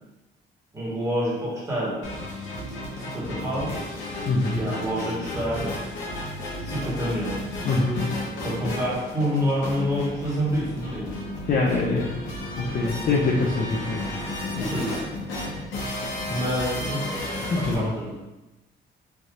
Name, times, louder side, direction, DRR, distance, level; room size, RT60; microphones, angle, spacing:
voice 1, 0.7-2.1 3.0-3.8 4.6-5.7 6.6-7.4 8.4-11.2 12.8-12.9 14.6-15.6 16.3-18.2, equal, 15° right, -8 dB, 1.3 m, -28 dB
sound 1, 2.0-17.7, left 1 dB, 75° left, 0.9 m, -33 dB
voice 2, 4.3-4.6 7.6-8.0 11.5-12.1 12.6-14.2 14.5-14.7 17.5-17.9, left 3 dB, 45° left, -3 dB, 0.5 m, -24 dB
3.3 x 2.7 x 2.4 m, 1.1 s
cardioid pair, 90°, 20 cm